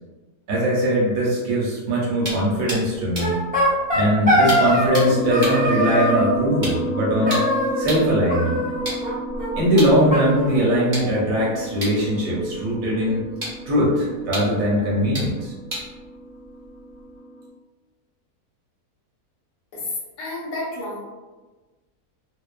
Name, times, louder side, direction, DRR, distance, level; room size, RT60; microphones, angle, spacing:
voice 1, 0.5-3.4 3.9-7.4 7.8-8.6 9.5-13.2 13.7-15.5, equal, 65° right, -5 dB, 1.1 m, -21 dB
sound 1, 2.2-8.2 8.7-17.2, equal, 35° right, 0.8 m, -36 dB
sound 2, 3.2-5.1 5.3-6.3 7.3-8.0 8.3-9.1 9.4-9.5 9.7-9.8 10.1-11.2, equal, 10° right, 0.5 m, -22 dB
sound 3, 5.0-17.5, right 1 dB, 90° left, 1.1 m, -31 dB
voice 2, 19.7-21.0, left 2 dB, 65° left, -4 dB, 1.0 m, -30 dB
2.5 x 2.2 x 2.3 m, 1.2 s
omnidirectional pair, 1.7 m